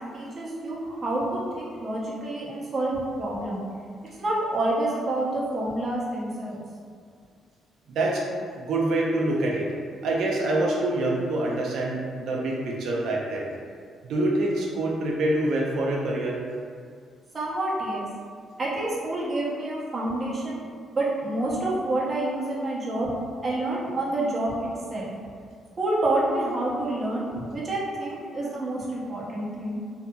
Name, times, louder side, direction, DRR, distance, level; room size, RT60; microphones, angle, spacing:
voice 1, 0.1-3.6 4.2-6.6 17.3-18.1 18.6-20.6 20.9-23.1 23.4-25.1 25.8-29.8, right 1 dB, 40° right, -6 dB, 0.7 m, -28 dB
voice 2, 7.9-8.2 8.6-9.7 10.0-13.5 14.1-16.4, right 2 dB, 75° right, -2 dB, 0.5 m, -25 dB
2.7 x 2.6 x 2.3 m, 2.1 s
cardioid pair, 90°, 0 cm